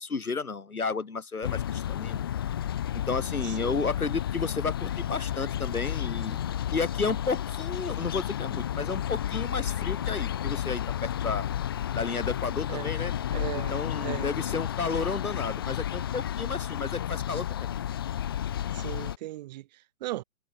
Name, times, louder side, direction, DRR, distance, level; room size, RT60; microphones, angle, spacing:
voice 1, 0.0-2.2 2.9-6.4 6.7-11.5 11.9-13.1 13.7-17.7, left 4 dB, 75° left, 6.8 m, -32 dB
sound 1, 1.4-19.2, left 10 dB, 15° left, 0.7 m, -32 dB
voice 2, 3.4-3.9 12.7-13.1 13.3-14.3 18.7-20.2, right 16 dB, 30° right, 3.6 m, -38 dB
figure-of-eight pair, 145°, 43 cm